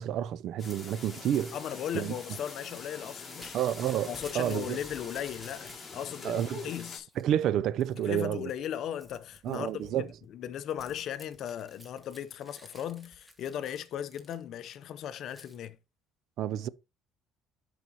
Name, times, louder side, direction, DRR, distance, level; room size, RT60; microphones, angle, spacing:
voice 1, 0.0-1.5 1.9-2.1 3.5-4.8 6.2-6.6 7.2-8.5 9.4-10.1 16.4-16.7, right 11 dB, 60° right, 0.4 m, -30 dB
sound 1, 0.6-7.0, left 4 dB, 20° left, 2.3 m, -45 dB
Crumpling crinkling / Tearing, 0.9-6.1 6.5-7.3 7.8-8.2 8.5-14.7 15.3-15.6, equal, 5° right, 1.2 m, -54 dB
voice 2, 1.5-3.6 4.1-7.1 8.0-15.8, left 10 dB, 55° left, 0.6 m, -37 dB
11.0 x 4.9 x 2.9 m
cardioid pair, 145°, 0 cm